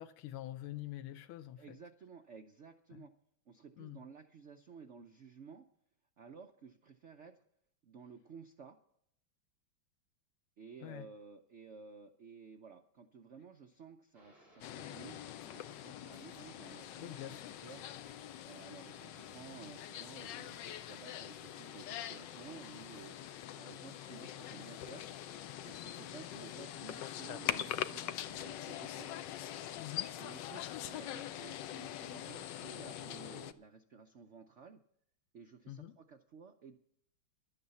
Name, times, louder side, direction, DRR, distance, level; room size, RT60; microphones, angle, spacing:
voice 1, 0.0-1.8 2.9-3.1 3.8-4.1 10.8-11.1 17.0-17.5 29.8-30.2 35.7-36.0, left 14 dB, 90° left, 9 dB, 1.5 m, -46 dB
voice 2, 1.6-3.1 3.5-5.7 6.2-7.4 7.8-8.8 10.6-17.8 18.4-25.0 25.6-29.1 30.2-34.8 35.3-36.8, right 5 dB, 80° right, 6 dB, 0.6 m, -54 dB
sound 1, 14.1-33.4, equal, 25° right, 6.9 m, -62 dB
sound 2, 14.6-33.5, left 11 dB, 70° left, 1.2 m, -43 dB
12.0 x 9.4 x 6.9 m, 0.72 s
omnidirectional pair, 2.2 m